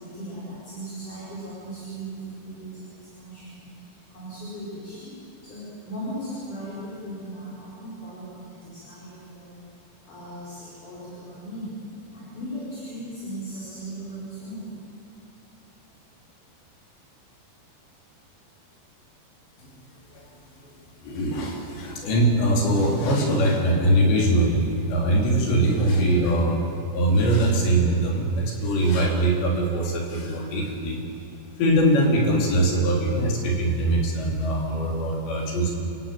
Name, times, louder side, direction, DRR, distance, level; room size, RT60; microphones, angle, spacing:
voice 1, 0.0-2.7 3.2-3.7 4.1-5.1 5.4-9.6 10.1-11.7 12.1-14.6, right 1 dB, 45° left, -8 dB, 6.7 m, -37 dB
voice 2, 21.0-26.6 26.9-31.0 31.6-35.7, right 1 dB, 85° left, 0 dB, 5.8 m, -22 dB
29.5 x 16.0 x 9.0 m, 2.9 s
omnidirectional pair, 4.9 m